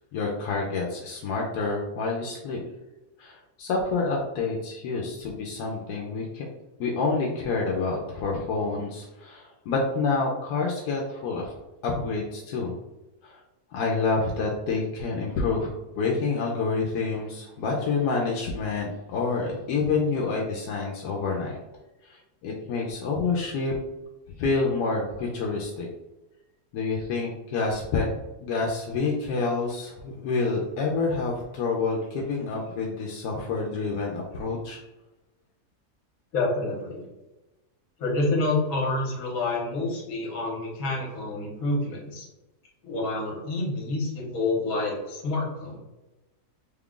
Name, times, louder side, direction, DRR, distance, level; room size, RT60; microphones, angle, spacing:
voice 1, 0.1-2.6 3.2-6.5 6.8-11.5 11.8-12.7 13.2-13.4 13.7-21.6 22.0-23.7 24.4-25.9 26.7-28.1 28.4-34.8, left 4 dB, 85° left, -2 dB, 1.2 m, -28 dB
voice 2, 36.3-37.1 38.0-42.3 42.8-45.8, left 2 dB, 65° left, -2 dB, 1.5 m, -28 dB
3.7 x 2.4 x 3.6 m, 1.0 s
omnidirectional pair, 1.7 m